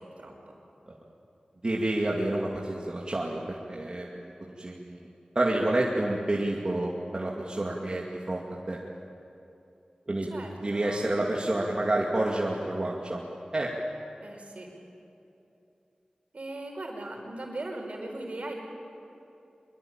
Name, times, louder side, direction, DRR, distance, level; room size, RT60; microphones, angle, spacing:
voice 1, 1.6-4.3 4.6-5.1 5.3-8.8 10.1-10.3 10.6-13.2 13.5-13.7, right 1 dB, 40° right, -3 dB, 2.5 m, -29 dB
voice 2, 10.3-11.1 14.2-14.7 16.3-18.5, right 2 dB, 65° right, 1 dB, 5.2 m, -39 dB
24.0 x 24.0 x 9.0 m, 2.8 s
wide cardioid pair, 80°, 2 cm